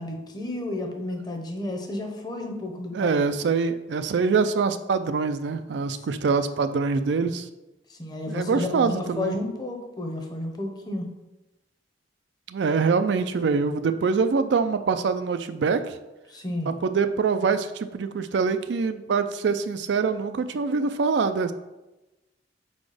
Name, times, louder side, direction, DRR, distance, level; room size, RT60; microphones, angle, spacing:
voice 1, 0.0-3.2 6.1-6.2 7.9-11.1 16.3-16.7, left 2 dB, 20° left, 3 dB, 0.8 m, -32 dB
voice 2, 2.9-7.5 8.3-9.4 12.5-16.0 16.6-21.5, right 5 dB, 70° right, 9 dB, 0.4 m, -24 dB
4.7 x 4.2 x 4.9 m, 1.0 s
head